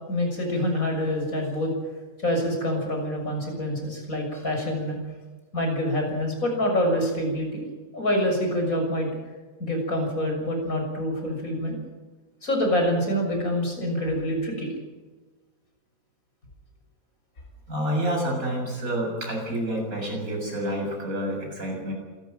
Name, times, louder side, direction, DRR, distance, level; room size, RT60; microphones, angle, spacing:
voice 1, 0.1-1.7 2.2-5.0 5.5-7.7 7.9-9.1 9.6-11.8 12.4-14.7, left 1 dB, 80° left, 2 dB, 7.1 m, -26 dB
voice 2, 17.7-21.9, right 1 dB, 80° right, 1 dB, 7.5 m, -28 dB
27.0 x 13.5 x 9.0 m, 1.3 s
omnidirectional pair, 1.5 m